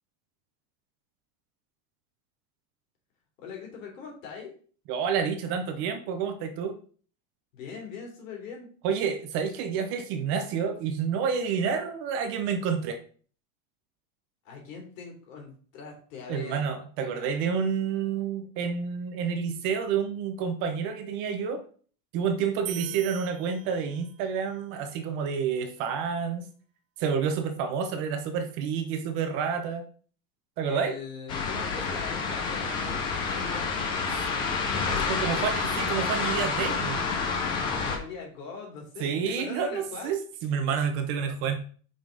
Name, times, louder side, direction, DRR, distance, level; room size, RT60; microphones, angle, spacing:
voice 1, 3.4-4.5 7.5-8.7 14.4-16.6 17.0-17.3 30.6-33.8 34.8-35.8 37.9-40.2, left 5 dB, 75° left, 0 dB, 2.9 m, -41 dB
voice 2, 4.9-6.8 8.8-13.0 16.3-21.6 22.1-26.5 27.0-29.8 30.6-31.0 34.9-37.0 39.0-41.6, right 6 dB, 30° right, 7 dB, 0.6 m, -29 dB
sound 1, 22.7-24.3, right 14 dB, 85° right, 0.7 m, -40 dB
sound 2, 31.3-38.0, left 5 dB, 15° left, 0.3 m, -29 dB
5.4 x 5.0 x 3.8 m, 0.44 s
supercardioid pair, 175°, 39 cm